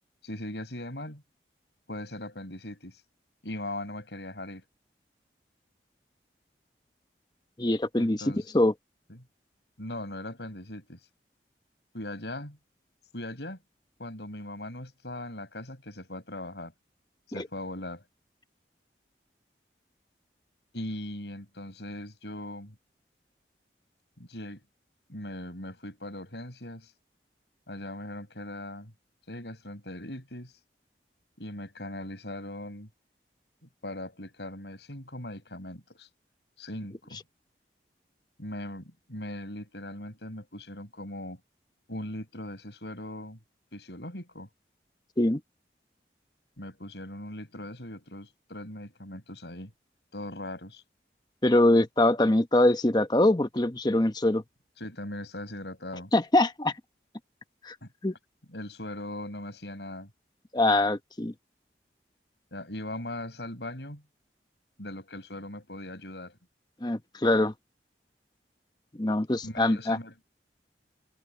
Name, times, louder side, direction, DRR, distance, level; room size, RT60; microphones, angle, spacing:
voice 1, 0.2-1.2 1.9-3.0 3.4-4.7 8.0-8.5 9.1-9.2 9.8-11.0 11.9-12.6 13.1-13.6 14.0-16.7 17.3-18.0 20.7-22.8 24.2-24.6 25.1-26.9 27.7-28.9 29.3-30.5 31.4-32.9 33.6-36.1 36.6-37.2 38.4-41.4 41.9-43.4 43.7-44.5 46.6-49.7 50.1-50.8 54.8-56.1 57.8-57.9 58.5-60.1 62.5-64.0 64.8-66.4 69.4-70.1, left 1 dB, 80° left, 7.2 m, -39 dB
voice 2, 7.6-8.2 8.5-8.7 17.4-17.5 45.2-45.4 51.4-54.4 56.1-56.7 57.6-57.7 58.0-58.1 60.5-61.3 66.8-67.5 68.9-70.0, left 1 dB, 25° left, 0.9 m, -23 dB
head